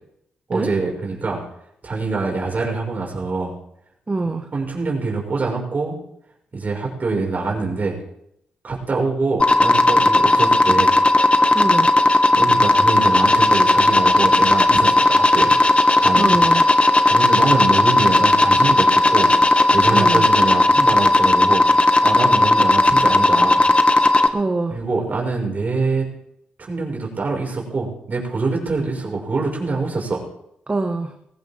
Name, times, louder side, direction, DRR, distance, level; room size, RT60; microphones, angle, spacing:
voice 1, 0.5-1.4 1.8-3.5 4.5-6.0 6.5-8.0 8.6-10.9 12.3-15.5 16.0-16.4 17.0-19.3 19.7-21.6 22.0-23.6 24.7-26.1 26.6-30.2, right 3 dB, 45° right, -1 dB, 5.7 m, -24 dB
voice 2, 4.1-4.4 11.5-11.9 16.2-16.6 19.9-20.2 24.3-24.7 30.7-31.1, right 3 dB, 30° right, 5 dB, 1.6 m, -23 dB
sound 1, 9.4-24.3, left 2 dB, 30° left, 1.7 m, -15 dB
20.5 x 16.0 x 3.7 m, 0.76 s
hypercardioid pair, 40°, 4 cm